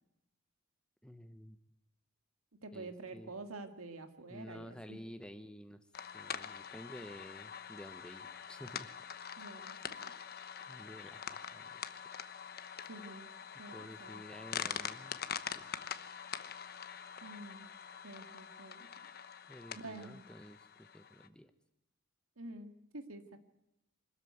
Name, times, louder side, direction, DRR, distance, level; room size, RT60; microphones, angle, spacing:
voice 1, 1.0-1.6 2.7-3.3 4.3-5.8 6.1-8.9 10.7-12.1 13.7-15.2 15.5-15.7 19.5-21.5, equal, 5° left, 8 dB, 1.0 m, -51 dB
voice 2, 2.6-5.0 9.4-10.0 12.9-13.3 13.6-14.2 17.2-17.7 18.0-18.9 19.7-20.3 22.4-23.4, right 2 dB, 85° right, 7 dB, 1.9 m, -48 dB
sound 1, 5.9-21.3, left 8 dB, 45° left, 1.0 m, -45 dB
25.0 x 13.5 x 9.5 m, 0.85 s
head